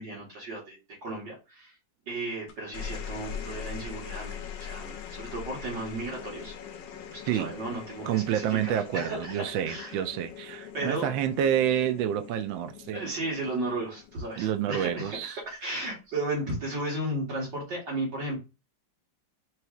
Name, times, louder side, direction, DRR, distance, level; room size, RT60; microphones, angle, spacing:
voice 1, 0.0-1.7 2.1-6.5 7.1-10.0 10.7-11.1 12.9-18.4, right 2 dB, 70° right, 2.1 m, -34 dB
sound 1, 2.5-15.1 16.3-16.8, left 8 dB, 75° left, 1.4 m, -42 dB
voice 2, 8.0-13.1 14.4-15.4, right 10 dB, 85° right, 1.3 m, -28 dB
5.9 x 3.1 x 2.4 m
omnidirectional pair, 2.0 m